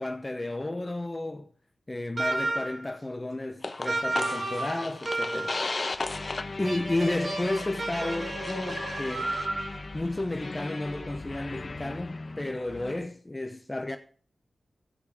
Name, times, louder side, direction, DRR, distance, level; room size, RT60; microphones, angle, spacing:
voice 1, 0.0-1.5 1.9-5.6 6.6-9.4 9.9-14.0, left 2 dB, 20° left, 0.9 m, -32 dB
sound 1, 2.2-2.9 3.8-5.7 6.6-9.8, right 2 dB, 45° right, 3.6 m, -32 dB
sound 2, 3.6-13.0, left 3 dB, 40° left, 1.0 m, -36 dB
16.0 x 5.4 x 4.9 m
wide cardioid pair, 90°, 0 cm